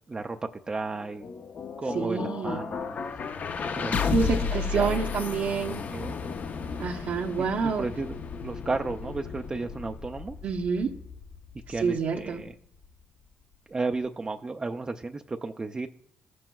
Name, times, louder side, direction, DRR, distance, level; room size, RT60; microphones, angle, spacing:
voice 1, 0.1-0.4 0.7-1.3 1.8-3.0 3.8-4.5 4.7-5.1 5.9-6.2 7.8-8.2 8.4-10.4 11.7-12.5 13.7-15.9, right 3 dB, 20° right, 5 dB, 0.4 m, -33 dB
sound 1, 0.9-13.0, left 5 dB, 45° left, 0.6 m, -34 dB
voice 2, 1.9-2.6 4.0-5.8 6.8-7.9 10.4-10.9 11.7-12.4, right 5 dB, 65° right, 0 dB, 0.8 m, -28 dB
14.5 x 7.6 x 2.3 m, 0.68 s
cardioid pair, 100°, 4 cm